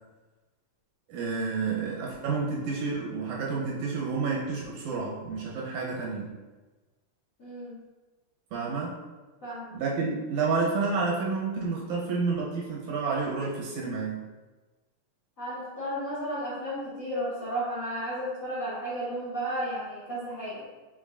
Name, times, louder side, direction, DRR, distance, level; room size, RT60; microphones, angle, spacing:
voice 1, 1.1-6.4 8.5-9.0 9.7-14.2, right 4 dB, 85° right, -4 dB, 2.4 m, -30 dB
voice 2, 7.4-7.8 9.4-9.8 15.4-20.6, equal, 60° left, -11 dB, 0.8 m, -33 dB
5.0 x 3.8 x 2.5 m, 1.3 s
omnidirectional pair, 3.4 m